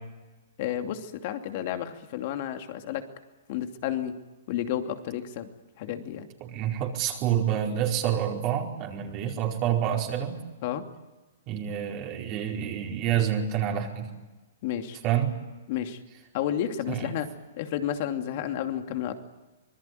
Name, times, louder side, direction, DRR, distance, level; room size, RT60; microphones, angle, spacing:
voice 1, 0.6-3.0 3.5-4.1 4.5-5.5 5.8-6.3 10.6-10.8 14.6-15.0 15.7-16.0 16.3-17.3 17.6-19.1, left 10 dB, 50° left, 6 dB, 2.7 m, -31 dB
voice 2, 6.4-10.4 11.5-14.1 15.0-15.3 16.9-17.1, right 10 dB, 35° right, 0 dB, 4.7 m, -28 dB
25.5 x 20.5 x 9.4 m, 1.1 s
hypercardioid pair, 140°, 0 cm